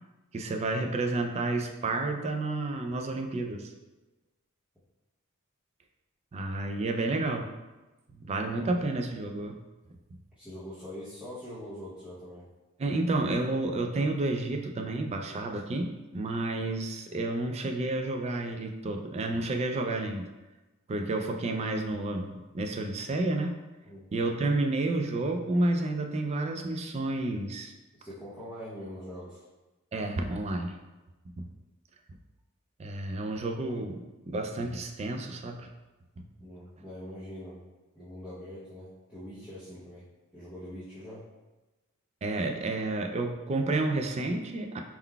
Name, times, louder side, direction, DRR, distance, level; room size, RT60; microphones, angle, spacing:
voice 1, 0.3-3.7 6.3-7.5 8.2-9.6 12.8-20.3 20.9-23.6 24.1-27.7 29.9-30.8 31.4-31.5 32.8-35.7 42.2-44.8, right 2 dB, 30° right, 4 dB, 0.3 m, -30 dB
voice 2, 10.4-12.5 23.8-24.0 28.0-29.5 36.4-37.7 37.9-40.1 40.3-41.2, equal, 5° right, -11 dB, 0.8 m, -43 dB
4.4 x 3.7 x 2.2 m, 1.1 s
head